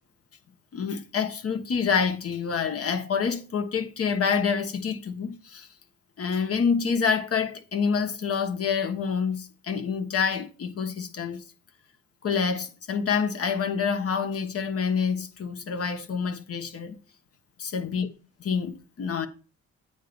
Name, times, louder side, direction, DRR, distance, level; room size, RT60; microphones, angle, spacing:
voice 1, 0.7-5.7 6.2-11.4 12.2-17.0 17.6-18.1 18.4-19.3, left 6 dB, 50° left, 1.2 m, -27 dB
8.7 x 3.9 x 6.8 m
cardioid pair, 90°, 30 cm